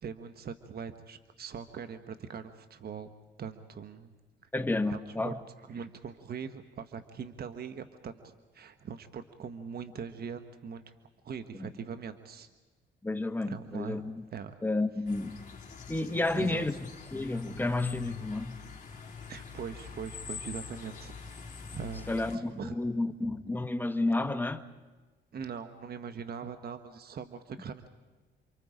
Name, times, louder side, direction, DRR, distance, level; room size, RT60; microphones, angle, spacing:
voice 1, 0.0-3.1 3.4-4.1 4.9-5.3 5.7-10.8 11.2-12.5 13.4-14.0 14.3-14.5 16.3-16.6 19.3-21.1 21.7-22.7 25.3-27.9, right 6 dB, 50° right, 1.3 m, -41 dB
voice 2, 4.5-5.4 11.6-11.7 13.0-14.2 14.6-15.3 15.9-16.7 17.1-18.6 22.1-24.6, left 2 dB, 10° left, 1.3 m, -31 dB
sound 1, 15.1-22.4, left 5 dB, 40° left, 4.0 m, -45 dB
28.5 x 24.5 x 5.1 m
cardioid pair, 90°, 20 cm